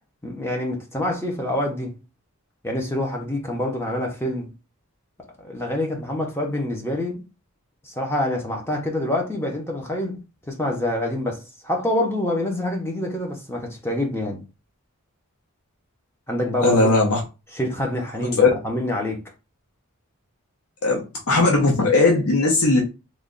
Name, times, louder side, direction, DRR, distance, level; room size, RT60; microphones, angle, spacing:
voice 1, 0.2-2.0 2.6-4.5 5.4-7.2 7.8-14.4 16.3-16.9 17.5-19.2, left 1 dB, 10° left, 0.7 m, -26 dB
voice 2, 16.6-17.2 18.2-18.5 20.8-22.8, left 3 dB, 85° left, 0.9 m, -18 dB
3.1 x 2.3 x 3.8 m
head